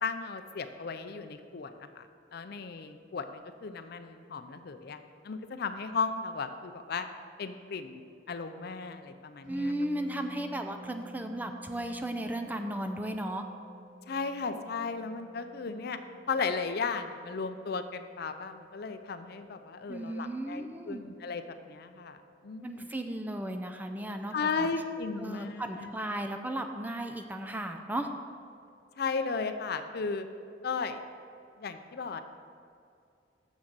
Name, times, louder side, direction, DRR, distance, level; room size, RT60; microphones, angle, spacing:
voice 1, 0.0-2.1 2.3-7.1 7.4-8.0 8.3-9.7 14.1-16.0 16.3-22.2 22.4-22.9 24.3-25.9 29.0-30.3 30.6-31.0 31.6-32.2, left 4 dB, 55° left, 9 dB, 0.5 m, -35 dB
sound 1, 9.4-28.8, right 1 dB, 45° right, 2.2 m, -53 dB
voice 2, 9.5-13.4 19.9-21.0 22.6-24.7 25.2-28.1, right 1 dB, 10° right, 5 dB, 0.4 m, -35 dB
7.1 x 6.4 x 6.0 m, 2.4 s
head